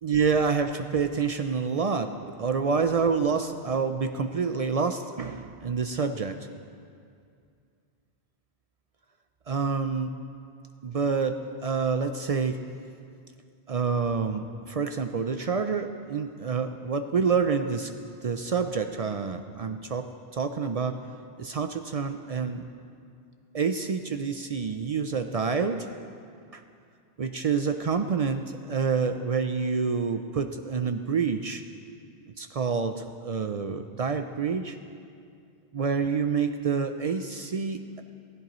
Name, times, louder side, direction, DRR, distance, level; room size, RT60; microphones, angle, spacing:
voice 1, 0.0-6.3 9.5-10.1 10.8-12.6 13.7-17.9 18.2-21.0 21.4-22.7 23.5-25.9 26.5-26.6 27.2-31.6 32.4-34.8 35.7-38.0, right 5 dB, 50° right, 7 dB, 0.4 m, -27 dB
16.5 x 14.5 x 3.1 m, 2.3 s
omnidirectional pair, 1.1 m